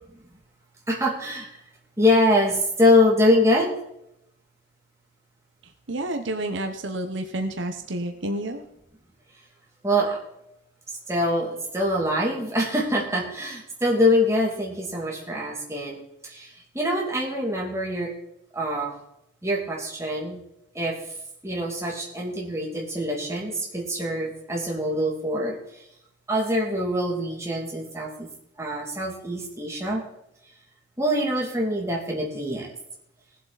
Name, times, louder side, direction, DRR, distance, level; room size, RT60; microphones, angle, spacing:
voice 1, 0.9-1.6 2.0-3.7 9.8-10.2 10.9-18.1 18.5-18.9 19.4-20.4 20.7-21.0 21.4-25.8 26.3-28.3 28.6-30.0 31.0-32.7, left 1 dB, 15° right, -2 dB, 2.6 m, -24 dB
voice 2, 5.9-8.6, right 1 dB, 65° right, 6 dB, 1.0 m, -29 dB
19.5 x 7.8 x 4.1 m, 0.81 s
head